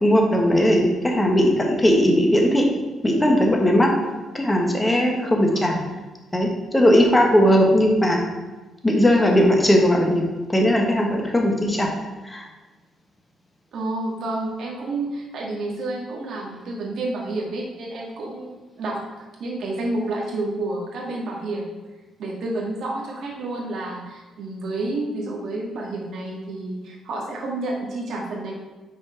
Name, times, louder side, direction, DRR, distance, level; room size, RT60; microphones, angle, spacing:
voice 1, 0.0-2.7 3.0-3.9 4.3-5.8 6.3-8.2 8.8-11.9 12.2-12.5, equal, 15° left, 1 dB, 1.5 m, -18 dB
voice 2, 13.7-19.0 19.4-21.8 22.2-28.5, right 2 dB, 70° right, -2 dB, 2.0 m, -29 dB
6.2 x 4.4 x 5.8 m, 1.2 s
cardioid pair, 90°, 0 cm